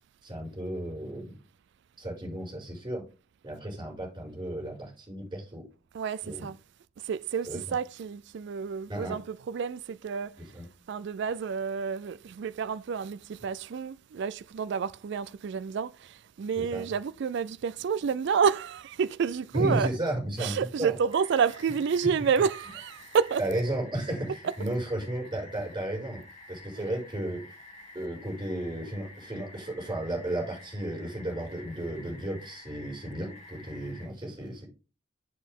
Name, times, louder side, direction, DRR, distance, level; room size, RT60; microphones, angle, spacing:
voice 1, 0.2-1.3 2.0-3.0 3.4-5.6 6.2-6.5 7.5-7.6 8.9-9.2 10.4-10.7 16.7-16.8 19.5-21.0 23.4-26.2 26.5-27.4 27.9-34.7, right 1 dB, 25° right, 6.0 m, -33 dB
voice 2, 5.9-6.6 7.0-10.4 10.9-19.9 20.4-23.4, right 6 dB, 65° right, 0.3 m, -29 dB
sound 1, 21.1-34.1, left 2 dB, 35° left, 1.8 m, -50 dB
8.1 x 7.7 x 3.7 m
head